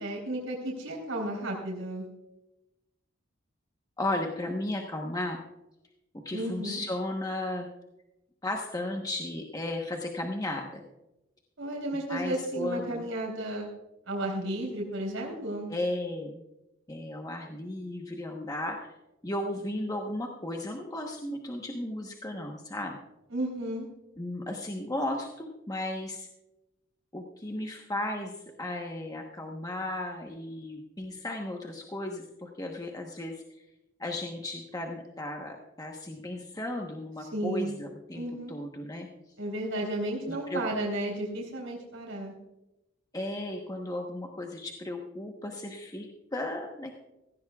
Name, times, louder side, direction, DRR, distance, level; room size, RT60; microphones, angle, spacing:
voice 1, 0.0-2.1 6.3-6.8 11.6-13.7 14.1-15.7 23.3-23.9 37.3-37.7 38.1-38.5 39.4-42.3, right 1 dB, 90° right, -2 dB, 3.7 m, -33 dB
voice 2, 4.0-5.4 6.1-7.7 8.4-10.8 12.1-13.1 15.7-16.4 16.9-18.9 19.2-23.0 24.2-26.3 27.1-33.4 34.0-39.1 40.2-40.6 43.1-46.9, left 1 dB, 20° left, 1 dB, 1.1 m, -35 dB
16.5 x 16.0 x 2.4 m, 0.94 s
head